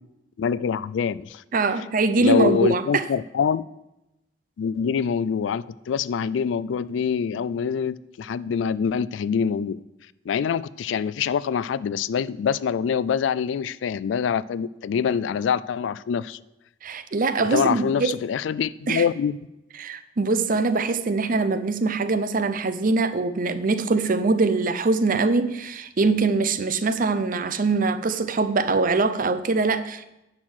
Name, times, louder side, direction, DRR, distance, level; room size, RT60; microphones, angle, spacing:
voice 1, 0.4-1.4 2.2-3.6 4.6-9.8 10.3-16.4 17.4-19.4, left 7 dB, 75° left, 0.3 m, -25 dB
voice 2, 1.5-3.0 16.8-18.1 18.9-19.0 19.8-30.1, right 3 dB, 45° right, 0.6 m, -23 dB
9.7 x 6.4 x 6.2 m
head